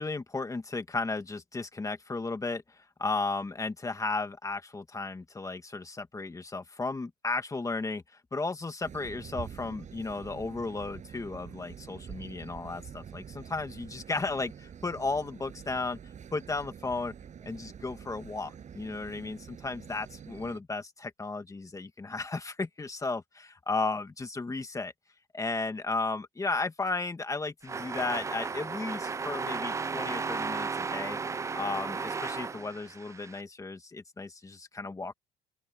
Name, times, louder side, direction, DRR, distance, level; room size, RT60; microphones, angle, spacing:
voice 1, 0.0-8.0 8.3-16.0 16.3-17.1 17.4-24.9 25.3-31.2 31.6-35.1, left 3 dB, 20° left, 2.1 m, -34 dB
sound 1, 8.8-20.6, right 8 dB, 45° right, 7.6 m, -46 dB
sound 2, 27.6-33.4, right 5 dB, 15° right, 0.3 m, -34 dB
open air
cardioid pair, 110°, 17 cm